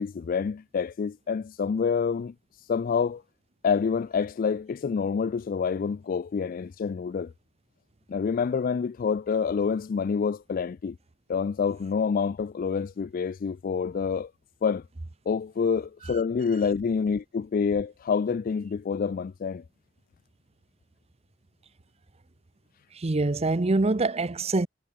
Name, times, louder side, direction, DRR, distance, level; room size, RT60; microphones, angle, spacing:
voice 1, 0.0-2.3 2.7-3.2 3.6-7.3 8.1-11.0 11.3-14.3 14.6-14.8 15.3-19.6, left 6 dB, 45° left, 0.3 m, -27 dB
voice 2, 22.9-24.7, right 2 dB, 30° right, 0.7 m, -25 dB
head